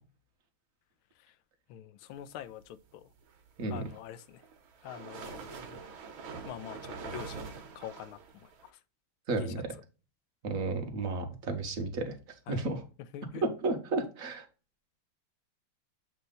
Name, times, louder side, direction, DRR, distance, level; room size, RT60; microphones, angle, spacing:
voice 1, 1.7-2.6 2.9-3.0 3.7-4.4 4.8-5.8 6.5-8.2 9.4-9.5 12.5-12.6 13.1-13.4, left 11 dB, 80° left, 1.4 m, -44 dB
sound 1, 3.6-8.7, right 5 dB, 70° right, 1.8 m, -44 dB
voice 2, 9.3-9.7 10.4-12.1 12.5-12.8 13.4-14.4, right 3 dB, 45° right, 1.5 m, -32 dB
7.8 x 3.2 x 3.9 m
omnidirectional pair, 2.3 m